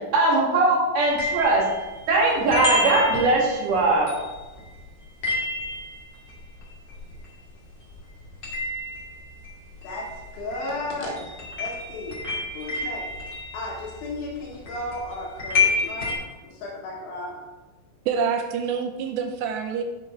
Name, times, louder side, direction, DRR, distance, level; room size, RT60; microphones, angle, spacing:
voice 1, 0.1-1.6 2.1-4.1, right 2 dB, 60° right, -4 dB, 3.7 m, -20 dB
sound 1, 1.0-7.6 7.9-16.1, left 3 dB, 30° left, 2.3 m, -30 dB
voice 2, 9.8-13.2 13.5-17.4, left 2 dB, 85° left, -4 dB, 3.9 m, -35 dB
voice 3, 18.1-19.8, right 6 dB, 85° right, 6 dB, 2.6 m, -26 dB
9.5 x 5.6 x 4.5 m, 1.2 s
omnidirectional pair, 5.3 m